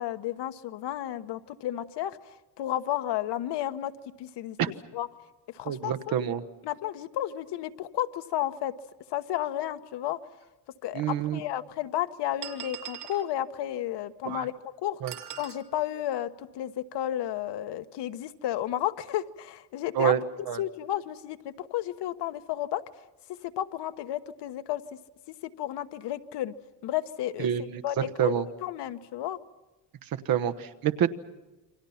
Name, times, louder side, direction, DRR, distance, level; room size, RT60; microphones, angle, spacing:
voice 1, 0.0-3.9 4.2-4.6 4.9-5.1 5.5-6.1 6.6-8.7 9.1-10.2 10.8-14.5 14.8-15.0 15.4-20.1 20.6-23.0 23.4-24.8 25.3-26.5 26.8-27.5 27.8-29.4, left 12 dB, 75° left, 11 dB, 1.2 m, -32 dB
voice 2, 5.6-6.4 10.9-11.4 14.3-14.4 15.0-15.1 20.0-20.2 20.5-20.6 27.4-27.8 28.2-28.4 30.3-31.1, right 10 dB, 55° right, 9 dB, 1.3 m, -27 dB
sound 1, 10.4-10.5 11.4-11.5 12.4-13.3 15.1-15.6, right 11 dB, 75° right, 2.5 m, -40 dB
28.5 x 25.0 x 5.8 m, 1.1 s
cardioid pair, 170°, 41 cm